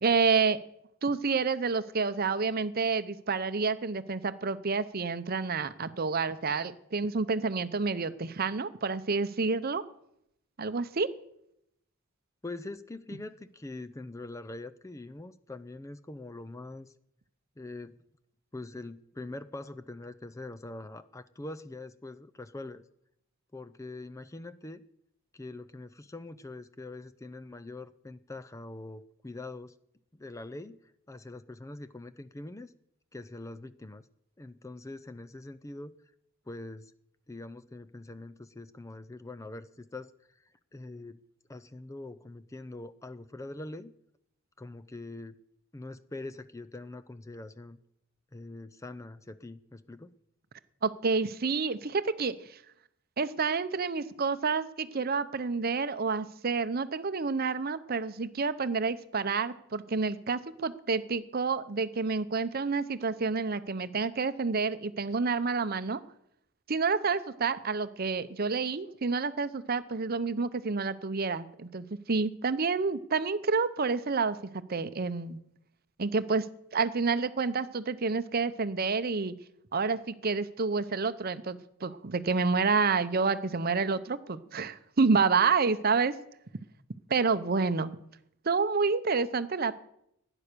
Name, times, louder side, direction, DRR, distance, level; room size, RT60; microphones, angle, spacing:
voice 1, 0.0-0.6 1.0-9.8 10.6-11.1 50.8-52.6 53.2-66.0 66.7-74.4 74.7-75.4 76.0-76.5 76.7-79.3 79.7-86.1 87.1-87.9 88.4-89.7, right 4 dB, 45° right, 13 dB, 0.7 m, -29 dB
voice 2, 12.4-16.9 17.6-18.0 18.5-22.8 23.5-24.8 25.3-29.8 30.1-30.8 31.1-32.7 33.1-34.0 34.4-35.9 36.5-36.9 37.3-40.4 40.7-41.2 41.5-43.9 44.6-45.3 45.7-47.8 48.3-50.1, left 2 dB, 15° left, 12 dB, 0.5 m, -43 dB
16.5 x 9.9 x 6.8 m, 0.76 s
head